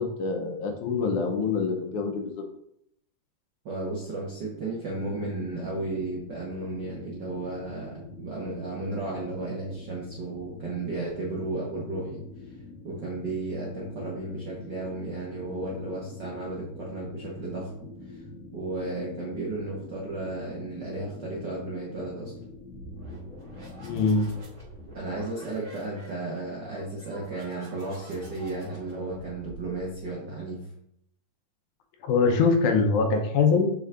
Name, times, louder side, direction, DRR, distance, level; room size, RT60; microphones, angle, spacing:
voice 1, 0.0-2.4 23.8-24.3 32.0-33.8, left 4 dB, 75° left, 3 dB, 2.2 m, -24 dB
voice 2, 3.6-12.2 12.8-18.2 18.5-22.3 24.9-30.7, right 2 dB, 65° right, -4 dB, 1.0 m, -34 dB
sound 1, 4.9-24.4, left 3 dB, 50° left, 1.1 m, -45 dB
sound 2, 22.7-30.1, right 1 dB, 20° right, 1.5 m, -46 dB
6.9 x 5.6 x 2.5 m, 0.74 s
omnidirectional pair, 3.6 m